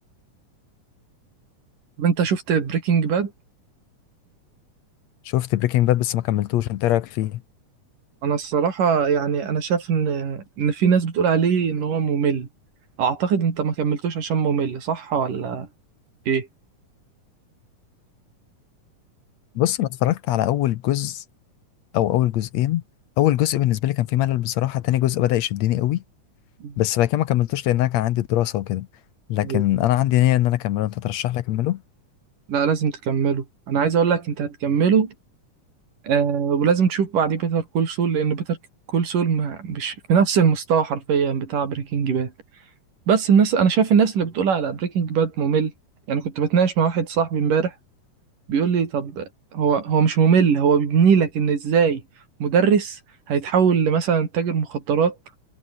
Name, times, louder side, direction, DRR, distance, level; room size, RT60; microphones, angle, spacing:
voice 1, 2.0-3.3 8.2-12.5 13.0-15.7 16.3-16.5 26.6-26.8 29.4-29.6 32.5-35.1 36.1-38.6 38.9-42.3 43.1-45.7 46.1-47.7 48.5-52.0 52.4-53.0 53.3-55.2, right 6 dB, 85° right, 5.1 m, -21 dB
voice 2, 5.3-7.4 19.6-21.2 21.9-22.8 23.2-26.0 26.8-28.9 29.3-31.8, left 14 dB, 70° left, 1.8 m, -22 dB
omnidirectional pair, 3.7 m